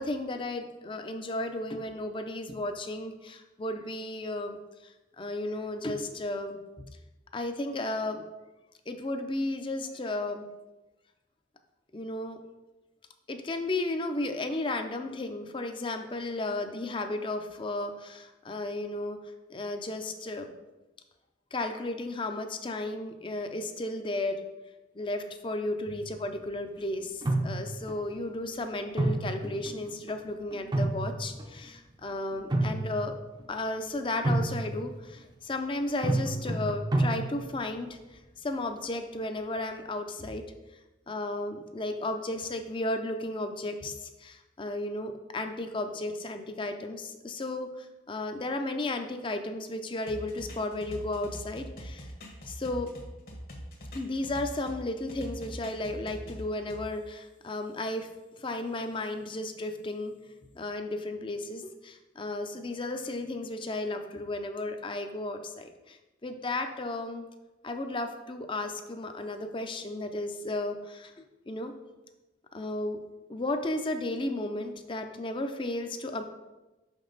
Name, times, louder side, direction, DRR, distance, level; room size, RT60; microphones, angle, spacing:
voice 1, 0.0-6.6 7.3-8.2 8.9-10.4 11.9-12.4 13.3-19.2 19.5-20.5 21.5-24.4 24.9-33.1 33.5-40.4 41.1-52.1 52.5-52.9 53.9-58.1 58.4-60.1 60.5-67.3 67.6-71.1 71.5-71.7 72.5-73.0 73.3-76.2, left 2 dB, 30° left, 7 dB, 0.5 m, -34 dB
sound 1, 25.9-26.4 27.2-28.0 29.0-30.1 30.5-31.7 32.3-33.2 34.2-35.0 36.0-37.7, right 2 dB, 25° right, 0.6 m, -29 dB
sound 2, 50.1-54.8 55.1-56.8, equal, 55° left, 1.2 m, -42 dB
5.8 x 5.3 x 3.9 m, 1.1 s
head